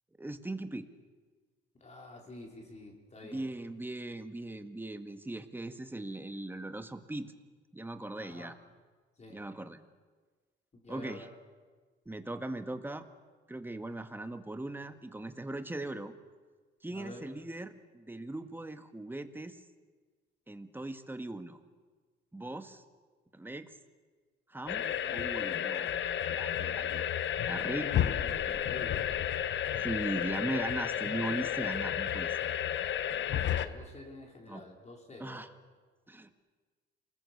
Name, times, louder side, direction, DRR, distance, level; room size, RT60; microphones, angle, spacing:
voice 1, 0.2-0.9 3.3-7.3 7.7-8.5 9.3-9.8 10.9-11.3 12.0-13.0 13.5-16.1 16.8-19.6 20.5-21.6 22.3-22.8 23.3-23.7 24.5-24.9 25.1-26.0 26.3-27.0 27.5-27.9 28.5-28.6 29.8-32.4 34.5-34.6 35.2-35.5 36.1-36.3, right 2 dB, 10° right, 8 dB, 1.7 m, -39 dB
voice 2, 1.8-3.5 8.1-8.6 9.2-9.5 10.7-11.3 16.9-17.3 27.8-29.0 33.2-35.5, left 2 dB, 35° left, 0 dB, 4.9 m, -48 dB
sound 1, 24.7-33.7, left 10 dB, 65° left, 1.1 m, -32 dB
27.5 x 20.0 x 7.1 m, 1.4 s
cardioid pair, 90°, 20 cm